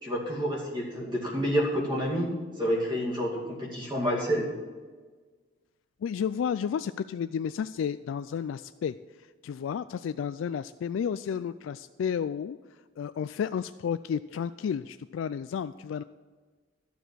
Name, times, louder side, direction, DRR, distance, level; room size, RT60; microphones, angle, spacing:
voice 1, 0.0-4.5, equal, 25° right, -3 dB, 2.5 m, -29 dB
voice 2, 6.0-8.9 9.4-12.6 13.0-16.0, left 7 dB, 85° left, 13 dB, 0.3 m, -32 dB
12.5 x 7.0 x 6.2 m, 1.4 s
head